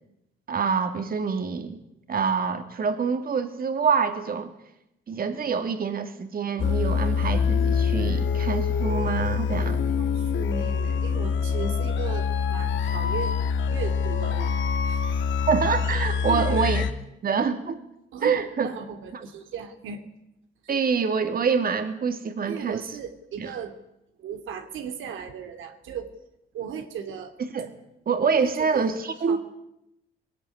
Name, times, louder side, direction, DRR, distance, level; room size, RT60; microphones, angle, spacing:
voice 1, 0.5-1.8 2.1-4.5 5.1-9.8 15.5-16.8 17.2-17.8 18.2-18.7 19.1-19.3 20.7-23.0 23.4-23.5 27.4-27.7 28.1-29.4, right 5 dB, 50° right, 7 dB, 2.7 m, -26 dB
sound 1, 6.6-16.9, left 6 dB, 70° left, 2.1 m, -25 dB
voice 2, 10.0-14.5 14.8-15.0 16.3-16.7 18.1-20.0 22.5-23.8 24.2-26.1 26.5-27.3 28.4-28.9 29.3-29.4, right 7 dB, 80° right, 6 dB, 2.5 m, -36 dB
20.5 x 18.0 x 9.8 m, 0.83 s
cardioid pair, 90°, 20 cm